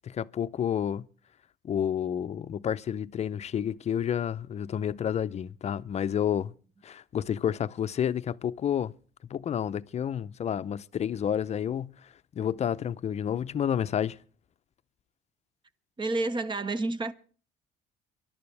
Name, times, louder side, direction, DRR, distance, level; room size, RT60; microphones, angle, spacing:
voice 1, 0.0-1.1 1.6-6.5 6.8-8.9 9.3-14.2, left 9 dB, 40° left, 0.6 m, -30 dB
voice 2, 16.0-17.1, right 2 dB, 30° right, 1.0 m, -29 dB
24.0 x 12.0 x 3.4 m
cardioid pair, 110°, 17 cm